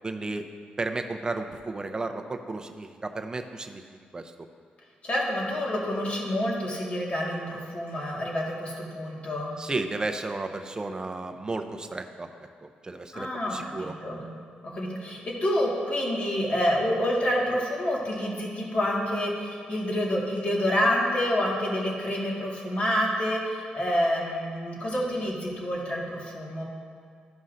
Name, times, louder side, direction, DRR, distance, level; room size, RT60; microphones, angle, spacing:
voice 1, 0.0-0.5 0.8-3.8 4.1-4.3 9.6-12.3 12.6-13.9, right 3 dB, 25° right, 6 dB, 0.5 m, -33 dB
voice 2, 5.0-9.5 13.1-14.3 14.6-26.6, equal, 40° left, -3 dB, 1.7 m, -28 dB
13.0 x 5.4 x 2.5 m, 2.1 s
cardioid pair, 95°, 3 cm